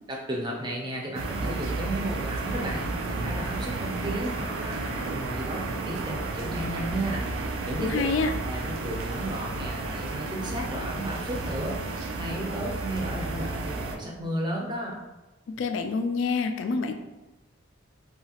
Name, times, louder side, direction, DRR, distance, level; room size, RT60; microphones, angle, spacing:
voice 1, 0.1-7.2 7.6-8.0 8.4-11.8 12.2-15.0, right 1 dB, 20° right, -1 dB, 0.5 m, -33 dB
sound 1, 1.1-14.0, right 3 dB, 80° right, 0.4 m, -32 dB
voice 2, 7.8-8.3 15.6-16.9, left 4 dB, 70° left, 6 dB, 0.3 m, -27 dB
2.8 x 2.3 x 2.8 m, 1.1 s
head